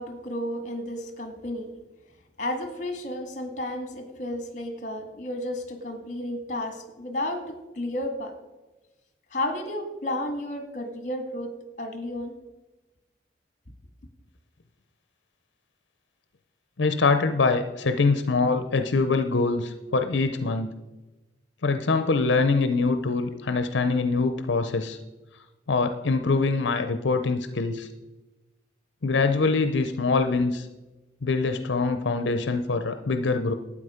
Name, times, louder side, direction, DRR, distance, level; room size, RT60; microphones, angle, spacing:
voice 1, 0.0-1.7 2.4-8.3 9.3-12.4, left 1 dB, 45° left, 7 dB, 1.7 m, -32 dB
voice 2, 16.8-20.7 21.6-25.0 25.7-27.9 29.0-30.7 31.2-33.5, left 3 dB, 85° left, 9 dB, 0.6 m, -24 dB
12.5 x 8.8 x 5.0 m, 1.1 s
head